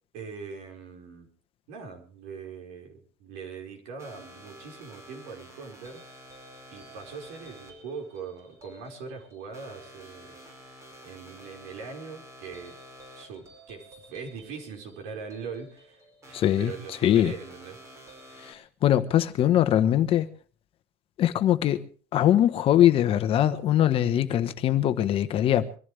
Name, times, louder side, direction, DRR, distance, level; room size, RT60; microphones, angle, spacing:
voice 1, 0.1-1.3 1.7-6.0 6.7-10.4 11.0-12.7 13.2-17.8, right 5 dB, 75° right, 5.2 m, -41 dB
sound 1, 4.0-18.5, equal, 20° right, 5.2 m, -50 dB
voice 2, 16.3-16.7 17.0-17.3 18.5-20.3 21.2-21.8 22.1-25.7, left 11 dB, 40° left, 1.2 m, -22 dB
24.0 x 15.0 x 3.4 m
cardioid pair, 165°, 15 cm